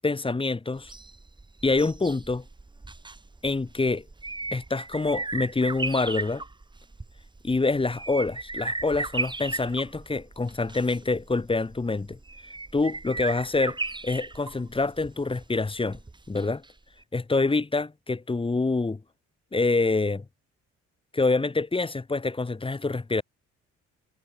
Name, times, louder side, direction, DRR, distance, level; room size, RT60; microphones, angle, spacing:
voice 1, 0.0-0.9 1.6-2.4 3.4-4.0 4.5-6.4 7.4-12.2 12.7-13.8 14.0-16.0 16.3-16.6 17.1-19.0 19.5-20.2 21.1-23.2, left 3 dB, 20° left, 1.3 m, -26 dB
sound 1, 0.8-16.7 17.0-17.1, right 3 dB, 15° right, 1.5 m, -36 dB
cardioid pair, 90°, 30 cm